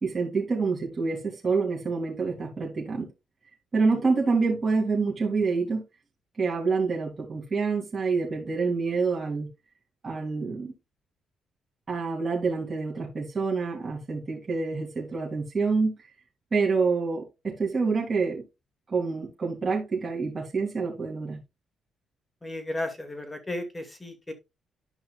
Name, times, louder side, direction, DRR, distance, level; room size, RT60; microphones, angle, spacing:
voice 1, 0.0-3.1 3.7-5.8 6.4-9.5 10.0-10.7 11.9-15.9 16.5-18.4 18.9-21.4, right 4 dB, 30° right, 3.5 m, -27 dB
voice 2, 22.4-24.3, left 1 dB, 15° left, 2.4 m, -34 dB
12.0 x 5.6 x 2.5 m
cardioid pair, 90°, 0 cm